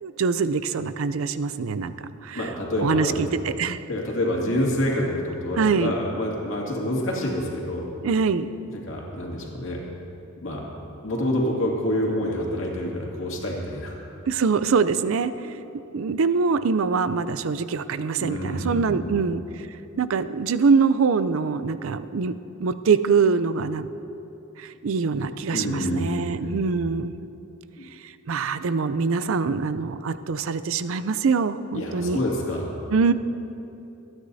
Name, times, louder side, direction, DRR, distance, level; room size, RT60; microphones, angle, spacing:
voice 1, 0.0-2.5 2.8-3.8 5.6-5.9 8.0-8.5 14.3-15.5 15.9-19.4 20.0-22.3 22.6-23.9 24.6-27.2 28.3-32.2 32.9-33.1, right 5 dB, 70° right, 13 dB, 0.4 m, -24 dB
voice 2, 2.3-3.2 3.9-7.9 8.7-9.8 10.4-10.7 11.0-14.0 15.4-15.6 18.2-19.1 25.5-26.6 27.8-27.9 31.7-32.8, left 1 dB, 65° left, -2 dB, 2.3 m, -27 dB
26.5 x 9.6 x 2.7 m, 2.9 s
head